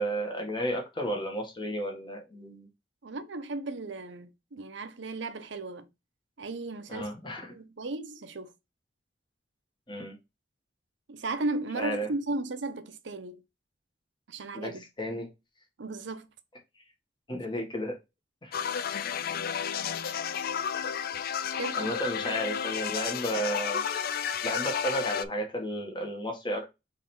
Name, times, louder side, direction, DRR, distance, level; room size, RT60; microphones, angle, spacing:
voice 1, 0.0-2.7 6.9-7.5 9.9-10.1 11.7-12.1 14.5-15.3 17.3-18.0 18.4-18.5 21.8-23.8 24.4-26.7, equal, 25° left, 1.4 m, -33 dB
voice 2, 3.0-5.8 6.4-7.1 7.4-8.5 11.1-13.4 14.3-14.8 15.8-16.3 21.6-21.9, right 2 dB, 70° right, 0.7 m, -35 dB
sound 1, 18.5-25.3, left 8 dB, 55° left, 0.4 m, -32 dB
3.9 x 3.2 x 4.2 m
head